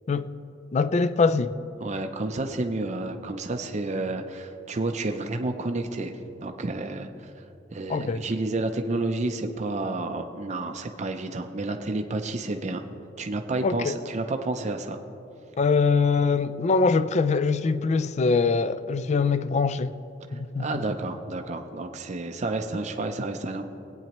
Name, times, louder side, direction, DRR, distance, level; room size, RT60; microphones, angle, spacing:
voice 1, 0.7-1.5 7.9-8.2 13.6-14.0 15.6-20.0 20.3-20.8, left 4 dB, 35° left, 0.3 m, -23 dB
voice 2, 1.8-7.1 7.7-12.8 13.2-15.0 20.6-23.6, right 2 dB, 40° right, 0.5 m, -30 dB
20.0 x 9.0 x 3.0 m
head